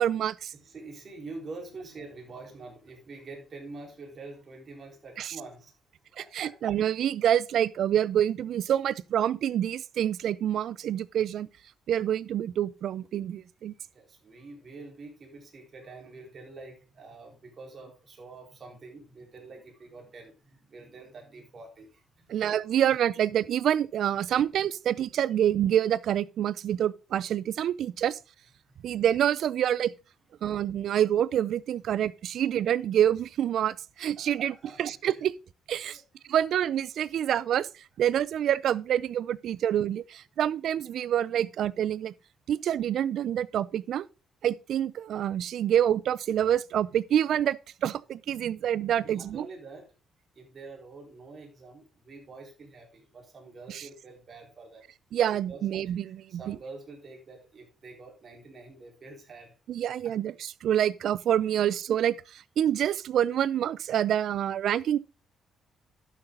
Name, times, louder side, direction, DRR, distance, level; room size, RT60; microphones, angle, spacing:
voice 1, 0.0-0.5 5.2-5.4 6.2-11.5 11.9-13.7 22.3-28.2 28.8-29.9 30.4-35.3 35.7-36.0 36.3-42.1 42.5-44.0 44.4-49.5 53.7-53.8 55.1-56.6 59.7-65.0, right 10 dB, 70° right, 0.5 m, -27 dB
voice 2, 0.6-5.7 6.1-6.6 13.9-22.3 28.7-28.8 34.2-34.8 35.8-36.4 49.0-49.9 50.4-54.8 55.5-55.6 56.0-59.5 60.0-60.1, right 3 dB, 45° right, 4.0 m, -46 dB
11.5 x 6.8 x 3.7 m
cardioid pair, 90°, 0 cm